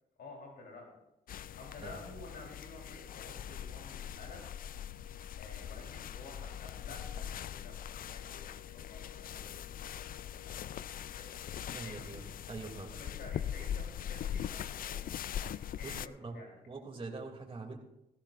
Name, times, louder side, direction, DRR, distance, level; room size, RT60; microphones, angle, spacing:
voice 1, 0.2-1.0 1.6-4.4 5.4-11.4 11.8-12.2 12.9-15.0 15.7-16.6, left 2 dB, 75° left, -1 dB, 3.6 m, -52 dB
sound 1, 1.3-16.1, left 9 dB, 60° left, 0.4 m, -41 dB
voice 2, 11.7-12.2 12.5-12.9 15.8-15.9 16.2-16.4 16.7-17.8, right 3 dB, 35° right, 0 dB, 2.7 m, -43 dB
17.0 x 14.5 x 2.5 m, 0.87 s
supercardioid pair, 60°, 17 cm